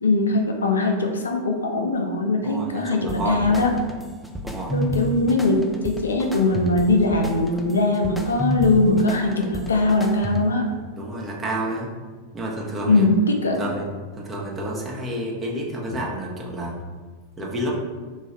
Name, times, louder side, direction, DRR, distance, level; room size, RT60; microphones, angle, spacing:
voice 1, 0.0-3.7 4.7-10.7 12.9-13.6, left 2 dB, 70° left, 2 dB, 0.4 m, -21 dB
voice 2, 2.4-3.7 4.4-4.8 10.9-11.9 12.3-13.1 13.6-13.9 14.2-16.7 17.4-17.7, right 1 dB, 20° right, -2 dB, 0.7 m, -30 dB
sound 1, 3.1-10.7, right 1 dB, ahead, 0.3 m, -31 dB
3.1 x 2.3 x 4.1 m, 1.4 s
figure-of-eight pair, 90°, 0 cm